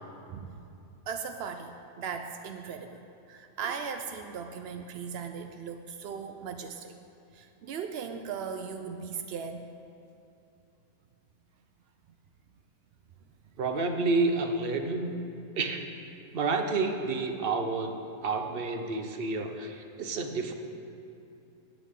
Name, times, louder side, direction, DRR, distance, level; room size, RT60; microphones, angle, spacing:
voice 1, 0.3-0.6 1.1-3.0 3.3-6.9 7.3-9.7, right 6 dB, 75° right, 6 dB, 0.5 m, -38 dB
voice 2, 13.6-15.1 15.6-15.8 16.3-20.5, right 3 dB, 45° right, 5 dB, 0.8 m, -29 dB
18.0 x 8.3 x 3.7 m, 2.7 s
omnidirectional pair, 1.7 m